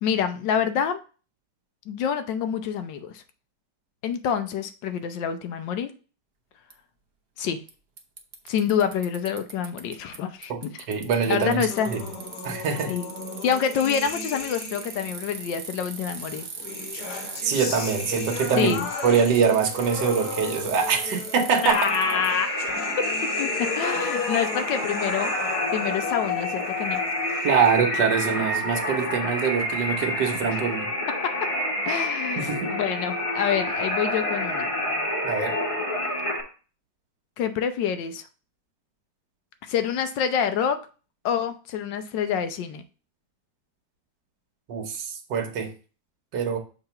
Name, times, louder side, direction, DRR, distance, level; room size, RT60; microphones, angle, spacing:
voice 1, 0.0-1.0 1.9-3.2 4.0-5.9 7.4-7.6 8.5-10.8 11.3-11.9 12.9-13.0 13.4-16.4 18.6-18.9 21.6-22.5 23.0-23.1 23.4-27.0 28.4-28.5 31.2-31.3 31.8-34.7 37.4-38.2 39.6-40.8 41.2-42.8, left 8 dB, 90° left, 10 dB, 1.4 m, -27 dB
Bicycle, 6.7-6.8 7.7-7.8 8.0-10.2 10.4-22.3, right 5 dB, 50° right, 0.8 m, -39 dB
voice 2, 10.9-12.0 12.4-12.9 17.4-18.8 19.0-21.9 27.4-30.9 32.4-32.8 35.2-35.6 44.7-45.7 46.3-46.6, right 6 dB, 75° right, 3 dB, 1.6 m, -24 dB
sound 1, 11.7-15.2 16.2-27.7, left 4 dB, 65° left, 1.6 m, -36 dB
sound 2, 21.7-36.4, left 1 dB, 20° left, 1.1 m, -28 dB
6.7 x 3.0 x 5.7 m, 0.36 s
omnidirectional pair, 1.9 m